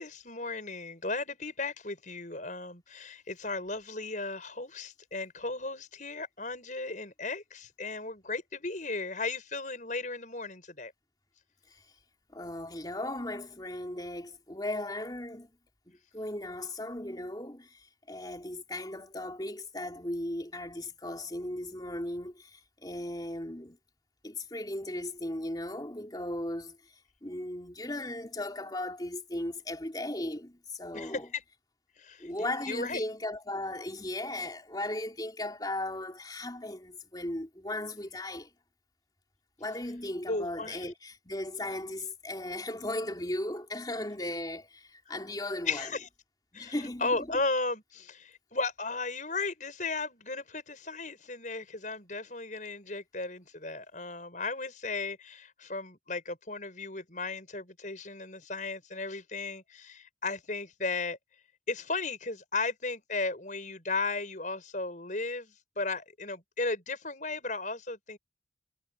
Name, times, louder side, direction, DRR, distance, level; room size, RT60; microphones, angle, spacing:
voice 1, 0.0-10.9 30.9-31.4 32.0-32.3 32.7-33.0 40.3-40.9 45.7-46.1 46.5-61.2 61.7-68.2, left 3 dB, 45° left, 7.2 m, -35 dB
voice 2, 12.3-15.5 15.9-17.7 18.1-23.8 24.2-26.8 27.2-31.2 32.2-38.5 39.6-45.9 46.5-47.2, left 1 dB, 20° left, 3.5 m, -37 dB
head